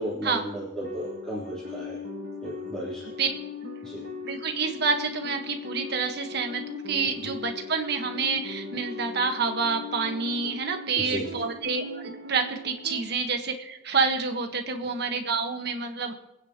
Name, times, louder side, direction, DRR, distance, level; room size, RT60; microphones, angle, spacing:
voice 1, 0.0-2.0 2.4-3.0 3.8-4.0 7.2-7.3 11.0-11.3, right 1 dB, 5° left, -10 dB, 3.6 m, -34 dB
sound 1, 0.8-13.0, left 3 dB, 70° right, 2.3 m, -39 dB
voice 2, 4.3-16.1, right 4 dB, 50° right, 4 dB, 1.4 m, -28 dB
26.5 x 9.5 x 3.0 m, 0.88 s
head